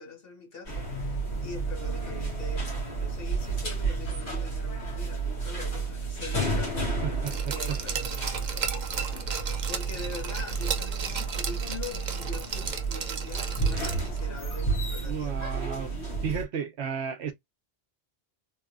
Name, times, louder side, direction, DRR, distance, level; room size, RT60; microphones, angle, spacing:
voice 1, 0.0-7.0 7.5-15.5, left 3 dB, 60° left, 1.4 m, -44 dB
sound 1, 0.7-16.4, right 3 dB, 75° left, 1.8 m, -31 dB
voice 2, 7.0-7.8 15.1-15.9 16.2-17.3, right 7 dB, 70° right, 1.0 m, -33 dB
Glass, 7.3-14.2 14.5-14.6, right 6 dB, 50° right, 0.7 m, -35 dB
3.5 x 2.8 x 2.5 m
omnidirectional pair, 1.1 m